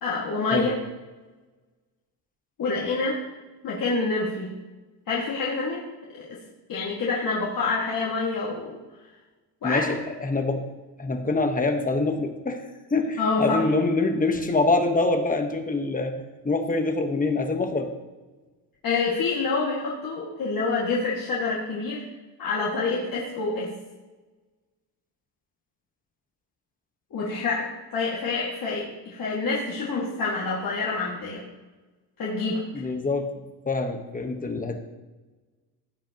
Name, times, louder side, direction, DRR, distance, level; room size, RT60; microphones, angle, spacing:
voice 1, 0.0-0.7 2.6-3.2 3.6-4.5 5.1-6.4 6.7-8.8 9.6-9.9 13.2-13.6 18.8-22.1 22.4-23.7 27.1-31.4 32.2-32.9, left 3 dB, 50° left, -5 dB, 2.1 m, -27 dB
voice 2, 9.6-10.7 11.0-12.6 12.9-17.9 32.7-33.4 33.6-34.8, left 3 dB, 20° left, 5 dB, 1.3 m, -25 dB
16.5 x 7.5 x 3.0 m, 1.2 s
cardioid pair, 105°, 44 cm